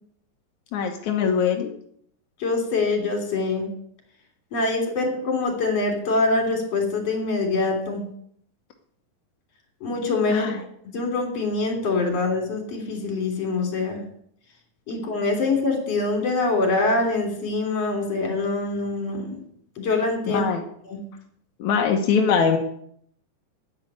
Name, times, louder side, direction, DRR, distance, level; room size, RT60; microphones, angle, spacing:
voice 1, 0.7-1.7 10.3-10.6 20.3-20.6 21.6-22.6, left 6 dB, 70° left, 2 dB, 1.8 m, -22 dB
voice 2, 2.4-3.7 4.5-8.1 9.8-14.0 14.9-19.4 19.8-20.5 20.8-21.0, left 3 dB, 40° left, 4 dB, 3.8 m, -24 dB
10.5 x 8.9 x 9.6 m, 0.68 s
omnidirectional pair, 5.0 m